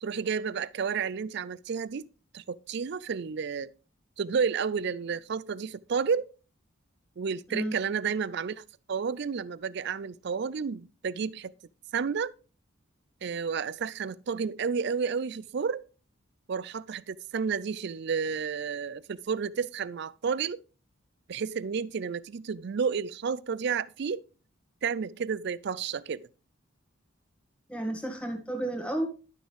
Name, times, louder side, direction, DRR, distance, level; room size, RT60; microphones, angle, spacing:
voice 1, 0.0-2.1 2.3-3.7 4.2-6.3 7.2-8.6 8.9-11.5 11.9-12.3 13.2-15.8 16.5-20.6 21.3-24.2 24.8-26.3, right 6 dB, 55° right, 0.4 m, -31 dB
voice 2, 27.7-29.1, right 1 dB, 5° left, 1.7 m, -31 dB
11.5 x 6.2 x 3.4 m
head